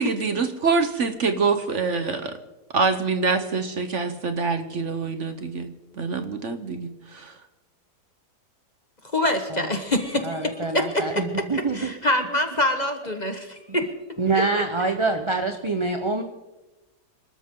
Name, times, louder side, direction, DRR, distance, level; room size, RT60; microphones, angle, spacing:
voice 1, 0.0-2.3 2.7-5.7 6.0-7.4, right 4 dB, 50° right, 8 dB, 1.2 m, -25 dB
voice 2, 9.1-11.2 11.5-13.9, left 1 dB, 30° left, 6 dB, 1.3 m, -25 dB
voice 3, 10.2-11.9 14.2-16.2, right 3 dB, 25° right, 5 dB, 0.8 m, -25 dB
26.5 x 13.0 x 3.8 m, 1.0 s
omnidirectional pair, 1.7 m